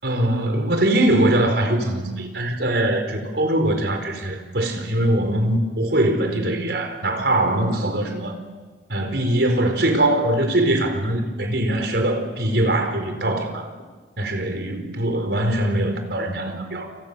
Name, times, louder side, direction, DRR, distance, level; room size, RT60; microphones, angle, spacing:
voice 1, 0.0-8.4 8.9-13.7 14.2-16.9, right 1 dB, 70° right, 6 dB, 4.7 m, -22 dB
29.0 x 29.0 x 7.0 m, 1.3 s
head